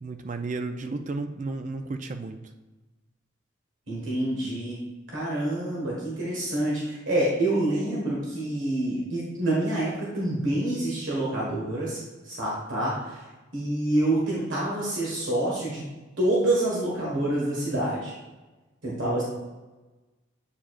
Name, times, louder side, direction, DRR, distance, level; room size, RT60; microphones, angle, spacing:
voice 1, 0.0-2.4, right 3 dB, 35° right, 7 dB, 0.4 m, -33 dB
voice 2, 3.9-4.8 5.1-12.0 12.2-13.2 13.5-15.8 16.2-18.1 18.8-19.2, right 1 dB, 65° right, -5 dB, 1.6 m, -27 dB
8.5 x 4.6 x 2.5 m, 1.1 s
head